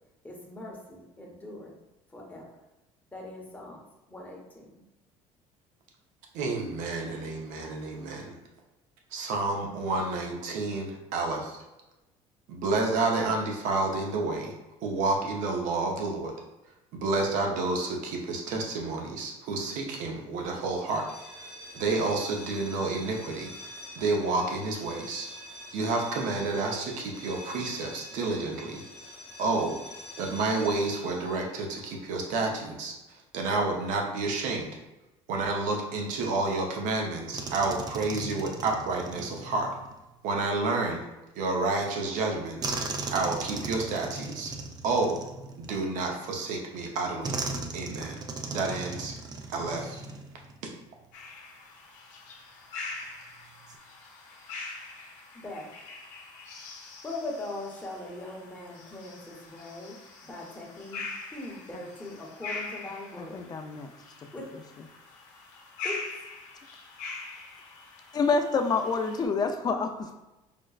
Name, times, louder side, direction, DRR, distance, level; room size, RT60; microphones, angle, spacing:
voice 1, 0.2-1.7 2.1-2.4 3.1-4.8 55.3-55.7 57.0-60.0 60.2-61.0 61.3-63.5 64.3-64.4 65.8-66.0, left 2 dB, 10° left, -2 dB, 0.9 m, -40 dB
voice 2, 6.3-8.3 9.1-11.6 12.5-14.5 14.8-16.3 16.9-21.1 21.7-23.5 24.0-25.3 25.7-28.8 29.4-29.8 30.2-32.9 33.3-34.7 35.3-39.7 40.2-41.0 41.4-42.8 43.1-44.5 44.8-45.2 45.6-47.3 47.7-48.2 48.5-49.1 49.5-50.0, right 3 dB, 75° right, 1 dB, 0.7 m, -29 dB
sound 1, 20.8-32.5, left 1 dB, 50° left, 0.9 m, -46 dB
sound 2, 37.3-40.0 42.6-46.1 47.2-50.6 50.9-51.1 53.4-53.8, right 3 dB, 30° right, 0.4 m, -37 dB
sound 3, 51.1-69.2, left 3 dB, 75° left, 0.7 m, -43 dB
voice 3, 63.3-63.9 68.1-70.1, left 4 dB, 30° left, 5 dB, 0.4 m, -27 dB
5.0 x 2.1 x 2.3 m, 1.0 s
cardioid pair, 110°, 13 cm